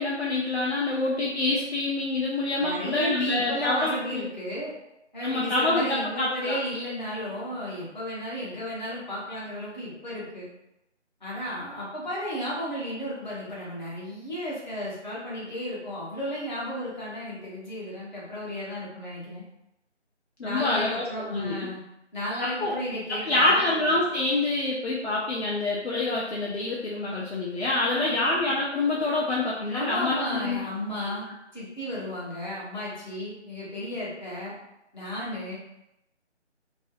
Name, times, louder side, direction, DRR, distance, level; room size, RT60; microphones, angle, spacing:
voice 1, 0.0-4.2 5.2-6.6 20.4-21.7 22.6-22.7 23.3-30.6, left 2 dB, 65° left, -5 dB, 0.5 m, -26 dB
voice 2, 2.6-4.7 5.1-10.5 11.2-19.4 20.4-21.8 22.1-23.7 27.8-28.2 29.7-31.3 31.5-34.5 34.9-35.5, equal, 40° left, -7 dB, 0.9 m, -33 dB
2.5 x 2.1 x 2.4 m, 0.86 s
figure-of-eight pair, 165°, 35 cm